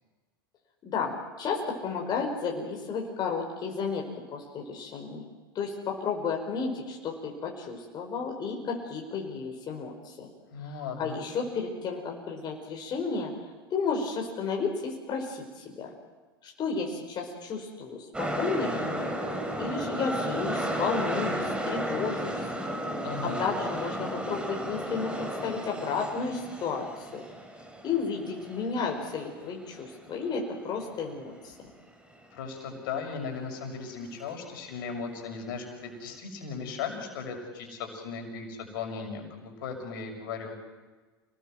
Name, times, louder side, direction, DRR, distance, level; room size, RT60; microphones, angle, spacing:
voice 1, 0.8-5.3 5.5-10.3 10.6-13.3 13.7-15.9 16.4-19.1 19.5-22.5 23.2-27.2 27.8-31.7, left 5 dB, 35° left, 1 dB, 5.0 m, -32 dB
voice 2, 10.5-11.3 23.0-23.5 32.3-40.5, left 5 dB, 65° left, 4 dB, 6.2 m, -37 dB
sound 1, 18.1-30.2 30.5-30.6, right 1 dB, 10° right, 4.4 m, -33 dB
28.5 x 19.5 x 7.8 m, 1.3 s
hypercardioid pair, 90°, 12 cm